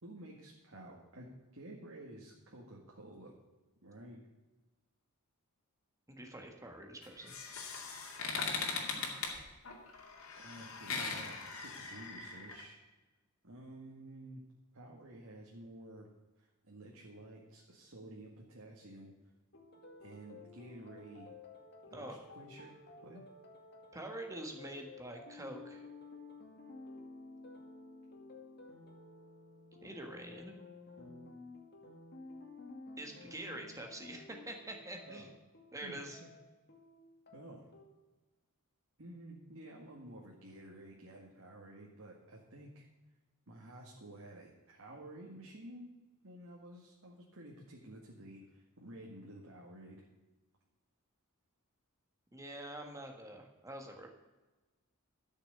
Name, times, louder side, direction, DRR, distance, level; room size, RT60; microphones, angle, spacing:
voice 1, 0.0-3.3 3.8-4.2 8.5-9.1 10.4-12.8 13.4-14.4 14.7-16.1 16.4-19.1 20.0-21.3 21.9-22.7 23.0-23.2 35.1-35.3 35.8-36.3 37.3-37.7 39.0-42.9 43.5-45.9 46.2-50.1, right 1 dB, 60° right, -2 dB, 2.0 m, -52 dB
voice 2, 6.1-7.3 21.9-22.2 23.9-25.9 29.8-30.6 33.0-35.3 35.7-36.2 52.3-54.1, right 1 dB, 15° right, 2 dB, 1.5 m, -46 dB
sound 1, 7.0-12.6, left 4 dB, 65° left, 2.4 m, -40 dB
sound 2, 19.5-37.8, left 3 dB, 50° left, 2.1 m, -53 dB
12.5 x 6.6 x 7.9 m, 1.2 s
head